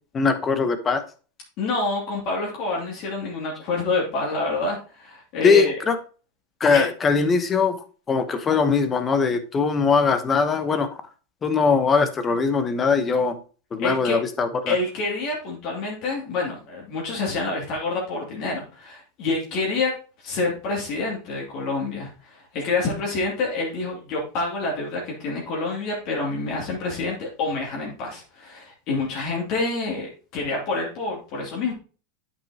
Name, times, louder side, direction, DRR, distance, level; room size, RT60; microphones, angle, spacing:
voice 1, 0.1-1.0 5.4-6.0 6.6-7.8 8.1-10.9 11.4-13.4 13.7-14.8, left 5 dB, 25° left, 10 dB, 0.9 m, -21 dB
voice 2, 1.6-5.7 6.7-6.9 13.8-14.2 14.7-19.9 20.2-31.7, left 3 dB, 50° left, -2 dB, 2.5 m, -27 dB
8.7 x 5.6 x 2.9 m, 0.36 s
hypercardioid pair, 120°, 0 cm